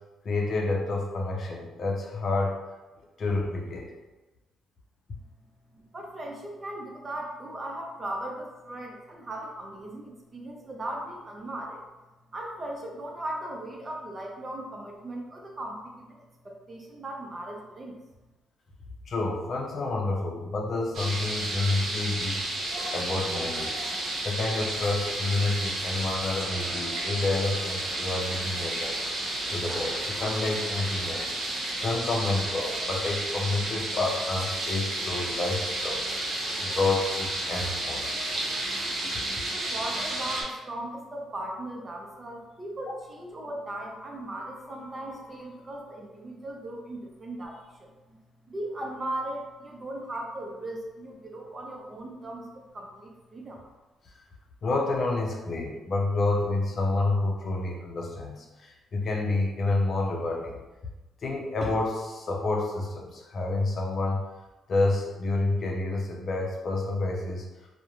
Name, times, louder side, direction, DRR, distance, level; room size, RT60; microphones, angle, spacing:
voice 1, 0.2-2.6 3.2-3.9 19.1-22.4 22.9-23.8 24.2-29.0 29.5-31.4 31.8-36.1 36.6-38.1 39.0-39.2 54.6-60.6 61.2-64.2 64.7-67.5, left 2 dB, 50° left, 0 dB, 0.5 m, -29 dB
voice 2, 5.7-11.8 12.3-18.0 38.9-53.6, right 1 dB, 30° right, 0 dB, 0.5 m, -38 dB
sound 1, 20.9-40.4, right 1 dB, 65° right, 0.8 m, -32 dB
2.4 x 2.1 x 2.9 m, 1.1 s
cardioid pair, 90°, 0 cm